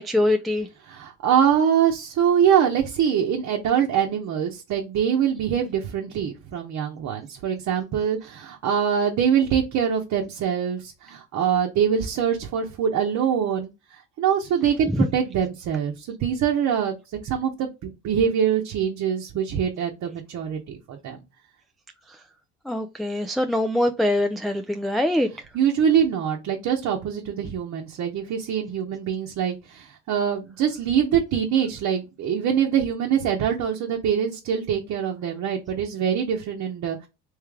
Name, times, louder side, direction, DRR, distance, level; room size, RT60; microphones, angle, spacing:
voice 1, 0.0-0.7 14.9-15.0 22.7-25.3, left 1 dB, ahead, 0.3 m, -23 dB
voice 2, 0.9-17.0 17.2-21.2 25.5-37.1, right 8 dB, 60° right, 0.9 m, -24 dB
3.3 x 3.1 x 3.5 m
supercardioid pair, 90°, 32 cm